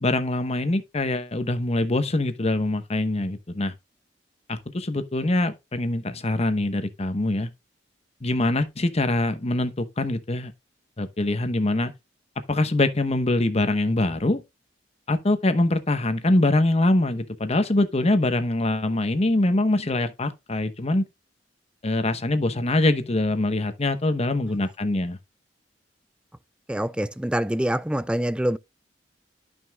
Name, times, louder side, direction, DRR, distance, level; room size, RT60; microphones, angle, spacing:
voice 1, 0.0-3.7 4.5-7.5 8.2-10.5 11.0-11.9 12.5-14.4 15.1-21.1 21.8-25.2, left 2 dB, 35° left, 1.0 m, -23 dB
voice 2, 26.7-28.6, right 1 dB, 5° right, 0.4 m, -25 dB
12.5 x 5.5 x 2.3 m
head